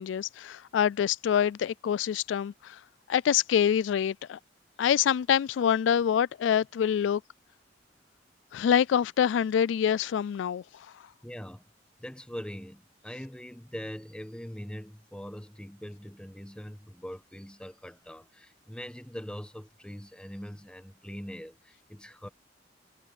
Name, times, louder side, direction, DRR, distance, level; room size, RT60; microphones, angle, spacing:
voice 1, 0.0-2.8 3.1-4.4 4.8-7.2 8.5-10.9, left 8 dB, 90° left, 0.3 m, -26 dB
voice 2, 11.2-11.6 12.0-22.3, equal, 5° left, 1.2 m, -42 dB
head